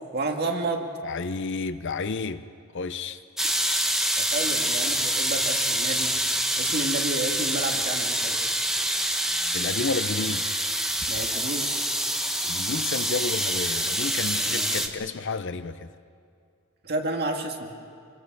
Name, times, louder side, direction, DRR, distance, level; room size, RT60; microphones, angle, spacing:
voice 1, 0.1-0.9 4.2-6.1 6.6-8.4 11.1-11.7 14.4-14.7 16.8-17.7, right 2 dB, 50° right, 2.0 m, -31 dB
voice 2, 1.0-2.4 2.7-3.2 9.5-10.5 12.4-15.9, left 4 dB, 55° left, 0.7 m, -31 dB
sound 1, 3.4-14.9, right 1 dB, ahead, 1.2 m, -26 dB
26.0 x 21.5 x 6.1 m
head